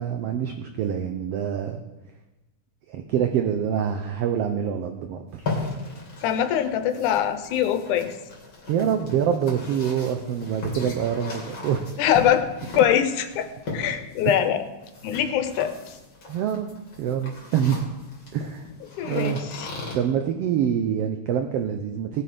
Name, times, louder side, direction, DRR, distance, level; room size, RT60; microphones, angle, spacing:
voice 1, 0.0-1.8 2.9-5.5 8.7-11.8 16.3-16.7 17.0-17.8 18.3-18.7 19.0-19.4 19.9-22.2, right 8 dB, 70° right, 6 dB, 1.5 m, -25 dB
sound 1, 5.3-20.0, left 3 dB, 40° left, 3.4 m, -37 dB
voice 2, 6.2-8.1 12.0-12.5 12.7-13.5 13.7-14.6 15.0-15.7 19.0-19.7, left 10 dB, 85° left, 9 dB, 2.3 m, -23 dB
18.5 x 7.2 x 5.1 m, 1.1 s
omnidirectional pair, 3.5 m